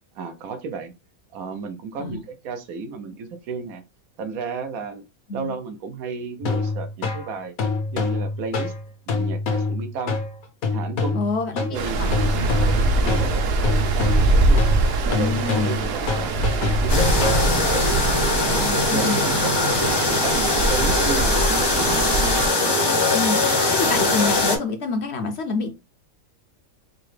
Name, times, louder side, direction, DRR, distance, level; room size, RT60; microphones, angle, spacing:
voice 1, 0.2-0.9 1.3-3.8 4.2-5.0 5.3-7.5 7.9-8.7 9.1-10.2 10.7-11.2 11.7-12.0 12.6-14.7 15.0-16.3 16.6-17.9 18.5-19.6 19.8-22.1, right 5 dB, 80° right, 1.1 m, -33 dB
sound 1, 6.4-17.9, left 4 dB, 75° left, 1.3 m, -26 dB
voice 2, 11.1-12.7 15.1-15.8 18.9-19.2 23.1-23.4 23.7-25.7, left 3 dB, 60° left, 0.8 m, -27 dB
Stream, 11.7-22.5, right 2 dB, 65° right, 0.6 m, -23 dB
sound 2, 16.9-24.6, left 2 dB, 40° left, 0.3 m, -21 dB
4.8 x 2.1 x 3.1 m
omnidirectional pair, 1.5 m